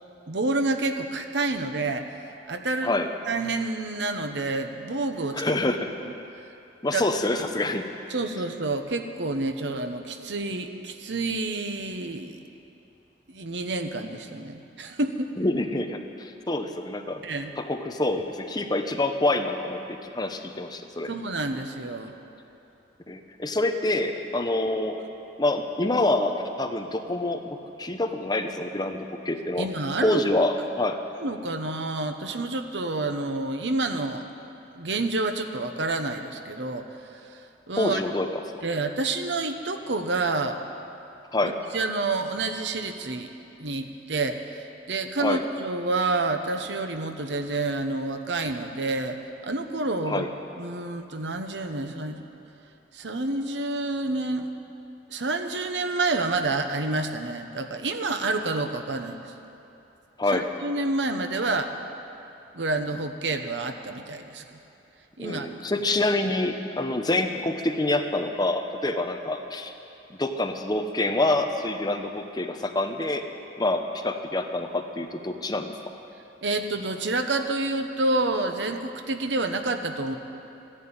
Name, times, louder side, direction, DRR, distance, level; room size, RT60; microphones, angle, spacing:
voice 1, 0.3-2.2 2.5-2.9 3.3-5.5 6.9-7.0 8.1-12.4 13.3-15.3 17.2-17.5 21.1-22.1 29.6-30.2 31.2-34.2 34.7-36.9 37.1-37.4 37.7-38.0 38.6-40.6 41.4-43.3 43.6-50.3 50.6-52.3 52.9-54.5 55.1-59.3 60.3-61.7 62.5-64.4 65.2-65.7 76.4-80.2, right 2 dB, 75° right, 7 dB, 1.0 m, -28 dB
voice 2, 5.3-5.9 6.8-7.9 15.4-17.2 17.6-21.1 23.1-25.0 25.4-29.7 30.0-31.0 37.8-38.4 41.3-41.6 45.2-45.4 50.1-50.3 60.2-60.5 65.2-69.7 70.1-73.2 73.6-75.7, left 2 dB, 20° left, 6 dB, 0.8 m, -26 dB
14.0 x 11.0 x 8.9 m, 2.8 s
head